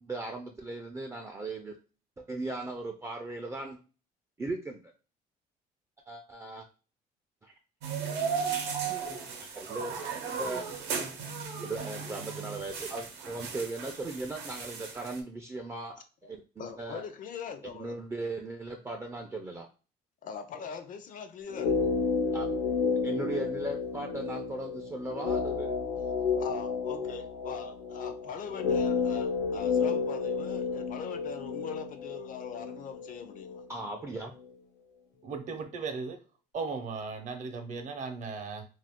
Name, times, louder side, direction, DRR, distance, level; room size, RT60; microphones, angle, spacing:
voice 1, 0.0-1.7 2.2-3.8 4.4-4.9 6.1-6.7 7.4-7.5 9.4-10.0 10.3-10.7 11.6-17.0 17.7-19.7 22.3-22.5 23.0-25.8 33.7-34.3, right 2 dB, 15° right, 0.4 m, -38 dB
sound 1, 7.8-15.2, right 6 dB, 90° right, 0.7 m, -36 dB
voice 2, 16.6-18.0 20.2-21.9 26.3-33.7, left 7 dB, 50° left, 0.5 m, -41 dB
sound 2, 21.5-33.6 33.9-34.0, left 5 dB, 90° left, 0.7 m, -31 dB
voice 3, 35.2-36.2 36.5-38.6, right 4 dB, 45° right, 0.7 m, -36 dB
2.4 x 2.3 x 3.5 m
cardioid pair, 110°, 17 cm